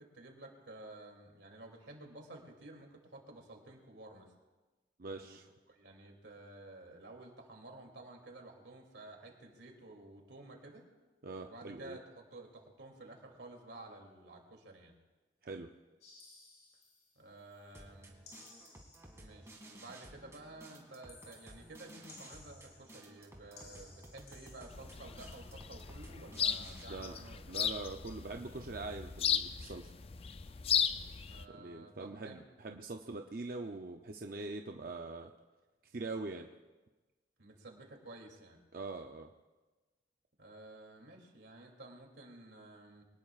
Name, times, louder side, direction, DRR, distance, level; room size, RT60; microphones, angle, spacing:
voice 1, 0.0-4.3 5.2-5.4 5.7-10.8 11.4-14.9 17.2-18.2 19.2-27.7 31.2-32.4 37.4-38.6 40.4-43.0, right 2 dB, 85° right, 1 dB, 2.8 m, -52 dB
voice 2, 5.0-5.5 11.2-12.0 15.4-15.7 26.9-27.2 27.5-29.9 31.5-35.3 35.9-36.5 38.7-39.3, right 3 dB, 50° right, 3 dB, 0.6 m, -43 dB
sound 1, 16.0-17.7 18.2-19.4 21.1-23.2 23.5-25.1, left 3 dB, 70° left, 6.6 m, -58 dB
sound 2, 17.7-26.8, right 1 dB, 15° right, 2.2 m, -55 dB
sound 3, 24.7-31.4, left 8 dB, 35° left, 0.4 m, -36 dB
24.5 x 18.5 x 2.5 m, 1.2 s
head